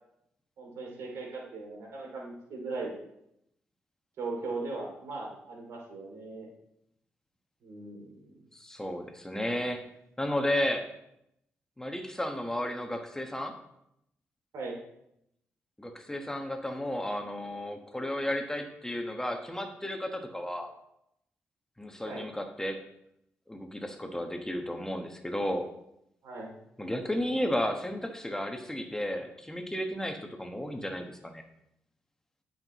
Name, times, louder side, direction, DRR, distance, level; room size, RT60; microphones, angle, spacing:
voice 1, 0.6-2.9 4.2-6.5 7.6-8.3 14.5-14.8 22.0-22.3 26.2-26.5, right 3 dB, 80° right, -1 dB, 2.9 m, -38 dB
voice 2, 8.5-9.8 10.2-10.9 11.8-13.5 15.8-20.7 21.8-22.8 23.5-25.7 26.8-31.4, left 1 dB, 10° left, 4 dB, 1.4 m, -33 dB
15.0 x 6.0 x 3.1 m, 0.78 s
cardioid pair, 60°, 5 cm